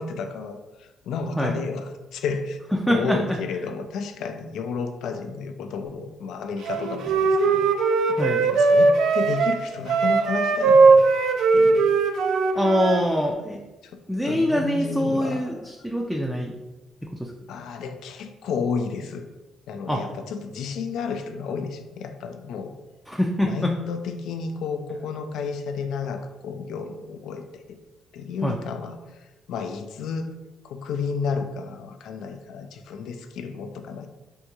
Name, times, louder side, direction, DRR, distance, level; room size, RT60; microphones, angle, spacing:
voice 1, 0.0-2.6 2.9-7.7 8.4-11.1 11.5-11.9 13.8-15.6 17.5-19.3 19.7-22.7 23.4-27.8 28.1-30.3 30.6-34.1, left 5 dB, 80° left, 7 dB, 0.3 m, -32 dB
voice 2, 2.8-3.2 8.1-8.4 12.6-13.6 14.1-16.5 17.2-17.3 19.9-20.0 23.1-23.7 28.4-28.6, equal, ahead, 0 dB, 0.3 m, -24 dB
Wind instrument woodwind instrument, 6.7-13.0, right 4 dB, 80° right, 0.3 m, -19 dB
3.5 x 2.2 x 2.9 m, 1.1 s
cardioid pair, 90°, 0 cm